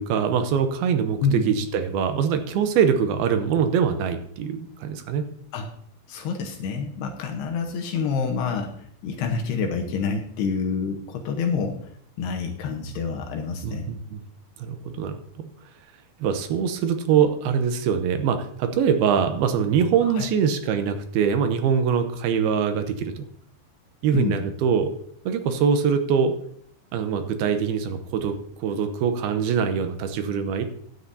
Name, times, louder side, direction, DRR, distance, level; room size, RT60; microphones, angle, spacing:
voice 1, 0.0-5.3 13.6-14.2 14.6-15.5 16.2-23.3 24.0-24.9 25.3-26.3 26.9-30.7, right 7 dB, 75° right, 7 dB, 2.5 m, -23 dB
voice 2, 6.1-11.8 12.2-13.9 20.1-20.3 24.1-24.4, left 5 dB, 75° left, 3 dB, 3.0 m, -27 dB
16.0 x 9.9 x 2.7 m, 0.64 s
omnidirectional pair, 5.0 m